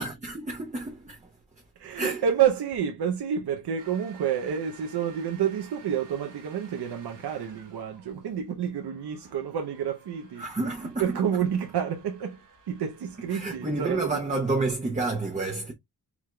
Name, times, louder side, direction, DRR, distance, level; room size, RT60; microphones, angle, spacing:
voice 1, 0.0-1.3 1.9-2.2 10.4-11.2 13.3-15.7, right 3 dB, 20° right, 0.7 m, -30 dB
voice 2, 1.8-10.4 11.0-12.4 12.7-14.4, right 8 dB, 70° right, 0.7 m, -29 dB
sound 1, 3.8-13.8, right 5 dB, 55° right, 1.6 m, -54 dB
4.8 x 3.7 x 2.2 m
wide cardioid pair, 130°, 40 cm